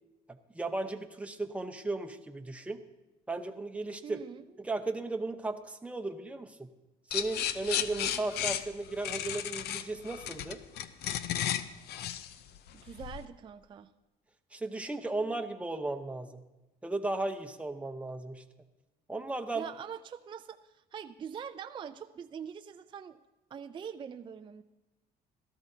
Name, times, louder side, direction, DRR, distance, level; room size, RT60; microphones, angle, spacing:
voice 1, 0.5-2.8 3.3-4.2 4.6-6.7 7.1-10.6 14.5-16.4 16.8-18.4 19.1-19.7, right 2 dB, 5° right, 6 dB, 0.8 m, -35 dB
voice 2, 4.0-4.4 12.7-13.9 19.5-23.2 23.5-24.6, right 7 dB, 30° right, 8 dB, 0.4 m, -43 dB
sound 1, 7.1-13.2, left 10 dB, 75° left, 0.6 m, -34 dB
17.0 x 13.0 x 2.8 m, 1.0 s
cardioid pair, 110°, 17 cm